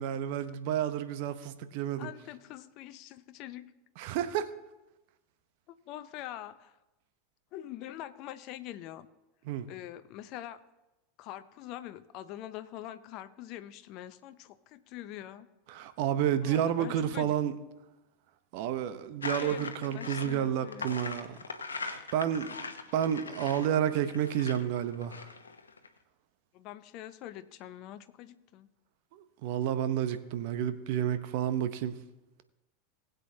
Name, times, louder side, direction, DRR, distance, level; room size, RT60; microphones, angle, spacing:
voice 1, 0.0-2.1 4.0-4.5 9.5-9.7 15.7-17.5 18.5-21.4 21.7-22.7 22.9-25.3 29.1-31.9, right 10 dB, 55° right, 0.8 m, -30 dB
voice 2, 2.0-3.7 5.7-6.8 7.5-9.1 9.7-10.6 11.2-15.5 16.4-17.3 19.3-21.0 26.5-28.7, left 13 dB, 50° left, 0.6 m, -44 dB
sound 1, 19.2-25.9, left 4 dB, 85° left, 0.9 m, -40 dB
20.0 x 8.0 x 2.8 m
figure-of-eight pair, 85°, 0 cm